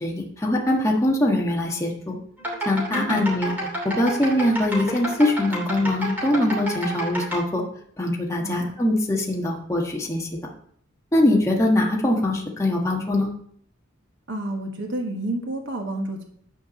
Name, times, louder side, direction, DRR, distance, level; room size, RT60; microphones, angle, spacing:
voice 1, 0.0-2.2 2.6-3.5 3.8-7.6 8.0-10.3 11.1-13.3, left 1 dB, 15° left, -1 dB, 1.4 m, -22 dB
sound 1, 2.4-7.4, right 1 dB, 10° right, 2.8 m, -30 dB
voice 2, 2.9-3.2 8.4-8.7 14.3-16.2, right 1 dB, 60° right, 2 dB, 1.4 m, -30 dB
10.5 x 4.6 x 6.9 m, 0.64 s
head